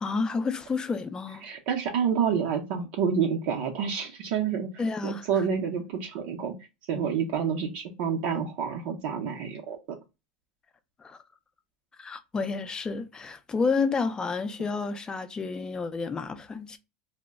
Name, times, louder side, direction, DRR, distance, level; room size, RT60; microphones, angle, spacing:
voice 1, 0.0-1.4 4.8-5.3 11.0-11.2 12.0-16.8, left 4 dB, 20° left, 0.4 m, -30 dB
voice 2, 1.4-4.7 5.0-6.5 6.9-9.8, right 7 dB, 65° right, 0.6 m, -28 dB
2.1 x 2.1 x 3.5 m
supercardioid pair, 115°, 4 cm